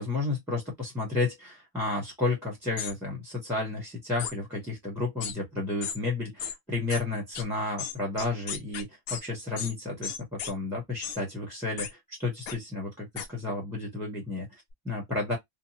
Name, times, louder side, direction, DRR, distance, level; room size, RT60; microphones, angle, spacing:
voice 1, 0.0-15.4, left 3 dB, ahead, 0.8 m, -32 dB
sound 1, 2.8-2.9 4.2-4.3 5.2-5.4 5.8-6.0 6.4-6.6 6.9-7.0 7.4-7.5 7.8-9.2 9.6-9.7 10.0-10.5 11.0-11.2 11.8-11.9 12.5-12.6 13.2-13.3, left 7 dB, 75° left, 1.0 m, -35 dB
2.9 x 2.1 x 2.7 m
omnidirectional pair, 1.5 m